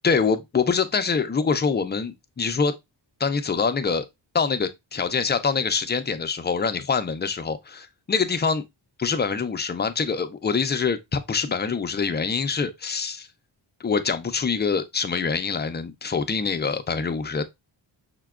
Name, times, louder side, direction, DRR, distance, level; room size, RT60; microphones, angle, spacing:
voice 1, 0.0-2.7 3.2-4.0 4.3-8.6 9.0-13.3 13.8-17.4, left 5 dB, 25° left, 0.4 m, -25 dB
5.7 x 2.2 x 2.3 m
wide cardioid pair, 105°, 46 cm